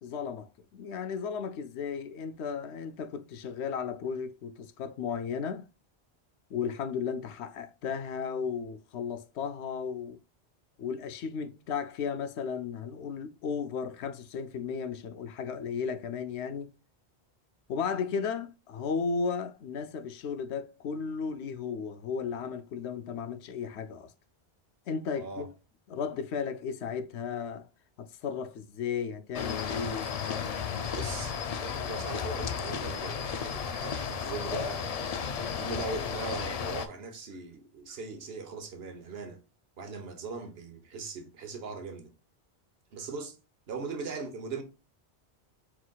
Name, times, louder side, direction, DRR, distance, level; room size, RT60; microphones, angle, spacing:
voice 1, 0.0-5.7 6.5-10.2 10.8-16.7 17.7-24.1 24.9-25.5 25.9-27.7 28.0-30.1, left 6 dB, 85° left, 0.9 m, -35 dB
voice 2, 25.2-25.5 30.9-34.9 35.5-39.4 39.8-42.1 42.9-43.3 43.7-44.6, right 4 dB, 65° right, 1.1 m, -39 dB
sound 1, 29.3-36.9, left 7 dB, 55° left, 0.4 m, -33 dB
4.6 x 3.9 x 2.2 m
omnidirectional pair, 1.1 m